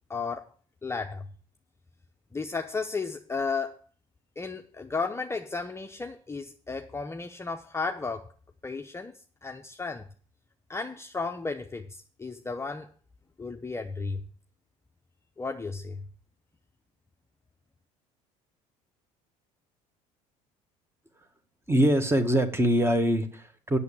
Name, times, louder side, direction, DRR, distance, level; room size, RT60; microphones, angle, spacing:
voice 1, 0.1-0.5 0.8-1.3 2.3-3.8 4.4-8.3 8.6-9.1 9.4-10.1 10.7-12.9 13.4-14.2 15.4-16.1, left 4 dB, 15° left, 5 dB, 0.8 m, -34 dB
voice 2, 21.7-23.8, equal, 15° right, 9 dB, 1.8 m, -23 dB
8.2 x 7.0 x 8.5 m, 0.44 s
hypercardioid pair, 75°, 18 cm